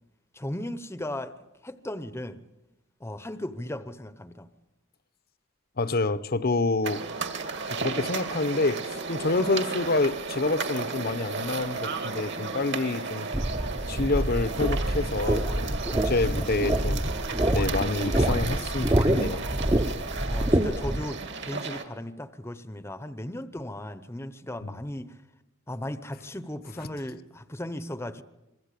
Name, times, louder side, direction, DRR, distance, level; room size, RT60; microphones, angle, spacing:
voice 1, 0.3-1.3 1.6-2.5 3.0-4.5 20.3-25.2 25.7-28.2, left 1 dB, 10° left, 0.9 m, -36 dB
voice 2, 5.8-7.0 7.7-13.3 13.9-17.0 17.5-19.4 24.6-24.8, left 3 dB, 45° left, 0.9 m, -28 dB
sound 1, 6.8-21.8, right 4 dB, 55° right, 2.2 m, -34 dB
sound 2, 13.3-21.0, right 1 dB, 20° right, 0.8 m, -26 dB
25.5 x 23.0 x 8.4 m
head